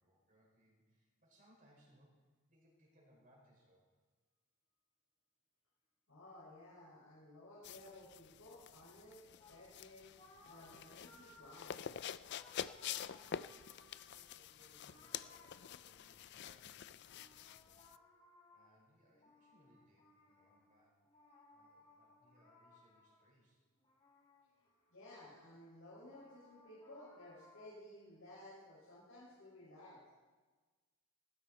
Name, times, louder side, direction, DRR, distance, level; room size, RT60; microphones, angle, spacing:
voice 1, 0.0-2.2 2.5-3.9 13.1-17.8 18.5-20.9 21.5-23.6, equal, 40° right, -2 dB, 5.3 m, -70 dB
voice 2, 6.1-10.1 10.4-11.8 24.9-30.0, left 1 dB, 80° left, -8 dB, 6.1 m, -56 dB
sound 1, 7.6-18.0, left 8 dB, 55° left, 0.4 m, -48 dB
sound 2, 9.4-16.4 17.0-23.3 23.8-25.0 25.4-27.7, left 2 dB, 25° left, 3.9 m, -65 dB
18.5 x 15.0 x 4.4 m, 1.3 s
head